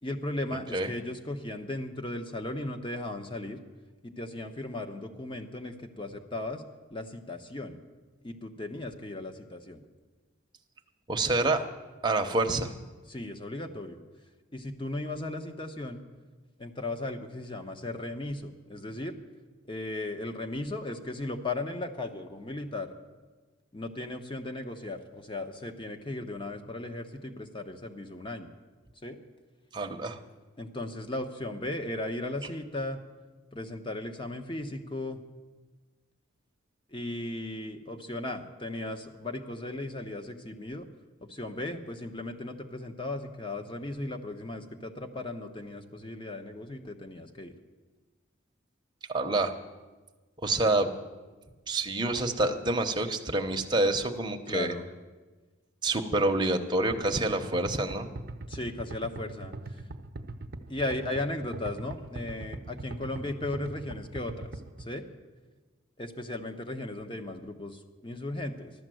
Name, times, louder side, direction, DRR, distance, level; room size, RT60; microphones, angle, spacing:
voice 1, 0.0-3.6 4.0-6.6 6.9-7.8 8.2-9.8 11.4-11.5 13.1-14.0 14.5-16.0 16.6-19.1 19.7-22.9 23.7-28.5 29.0-29.2 30.6-33.0 33.5-35.2 36.9-40.9 41.2-47.5 50.6-50.9 54.5-54.8 58.5-59.8 60.7-64.5 64.8-65.1 66.0-68.7, left 2 dB, 25° left, 6 dB, 1.0 m, -36 dB
voice 2, 11.1-11.6 12.0-12.7 29.7-30.2 49.1-49.6 50.4-50.9 51.7-54.7 55.8-58.1, right 2 dB, 20° right, 4 dB, 0.9 m, -27 dB
sound 1, 56.9-64.9, right 2 dB, 50° right, 0.8 m, -41 dB
14.5 x 12.0 x 7.7 m, 1.3 s
head